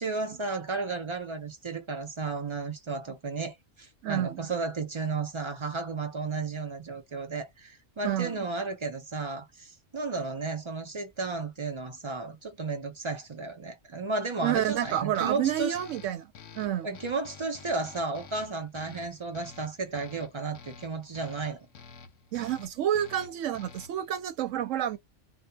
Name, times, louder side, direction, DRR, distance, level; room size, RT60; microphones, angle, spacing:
voice 1, 0.0-15.8 16.8-21.6, right 3 dB, 45° right, 0.4 m, -33 dB
voice 2, 4.0-4.5 8.0-8.4 14.4-16.3 16.6-16.9 22.3-25.0, right 11 dB, 90° right, 1.0 m, -29 dB
sound 1, 14.5-24.1, left 6 dB, 75° left, 1.0 m, -50 dB
2.8 x 2.2 x 2.2 m
omnidirectional pair, 1.3 m